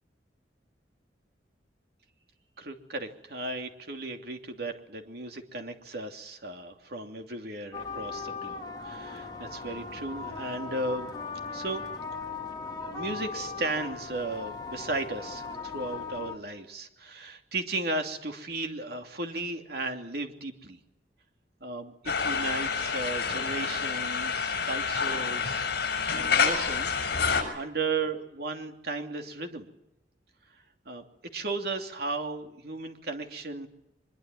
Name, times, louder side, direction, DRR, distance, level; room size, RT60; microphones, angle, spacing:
voice 1, 2.6-11.2 11.5-11.8 12.8-20.8 21.6-25.6 26.1-29.7 30.8-31.0 31.3-33.7, right 2 dB, 60° right, 5 dB, 2.9 m, -35 dB
sound 1, 7.7-16.3, left 4 dB, 25° left, 3.6 m, -38 dB
sound 2, 22.1-27.4, left 6 dB, 60° left, 6.5 m, -28 dB
24.0 x 22.0 x 9.3 m, 0.83 s
head